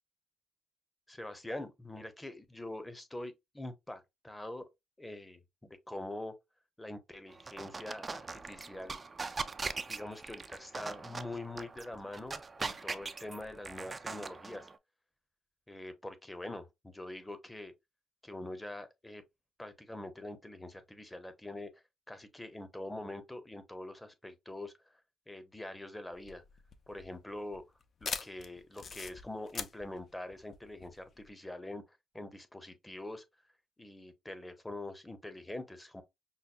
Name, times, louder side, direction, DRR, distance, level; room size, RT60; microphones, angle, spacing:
voice 1, 1.1-4.7 5.0-6.3 6.8-9.0 9.9-14.7 15.7-17.7 18.2-19.2 19.6-24.7 25.3-26.4 26.9-27.6 28.0-33.2 33.8-36.0, left 1 dB, 10° left, 0.8 m, -44 dB
sound 1, 7.3-14.8, right 4 dB, 30° right, 0.4 m, -41 dB
sound 2, 26.1-31.3, left 5 dB, 50° left, 0.5 m, -43 dB
5.6 x 2.1 x 2.5 m
cardioid pair, 90°, 0 cm